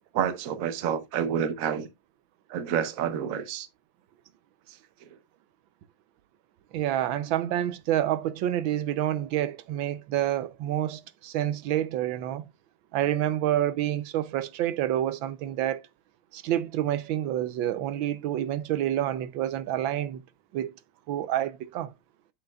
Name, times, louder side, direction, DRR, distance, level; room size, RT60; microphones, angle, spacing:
voice 1, 0.1-1.9 2.5-3.7 4.7-4.8, right 8 dB, 55° right, 1.1 m, -28 dB
voice 2, 6.7-12.4 12.9-15.8 16.3-20.2 20.5-20.7 21.1-21.9, right 12 dB, 85° right, 1.4 m, -28 dB
8.9 x 7.5 x 2.3 m
omnidirectional pair, 2.1 m